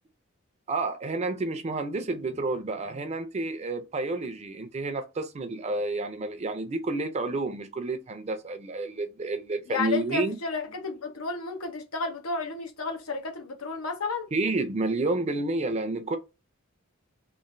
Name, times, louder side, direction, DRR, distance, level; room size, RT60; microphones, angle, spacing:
voice 1, 0.7-10.4 14.3-16.2, right 2 dB, 30° right, 0.4 m, -30 dB
voice 2, 9.7-14.3, left 4 dB, 90° left, 0.8 m, -32 dB
3.0 x 2.5 x 2.5 m
head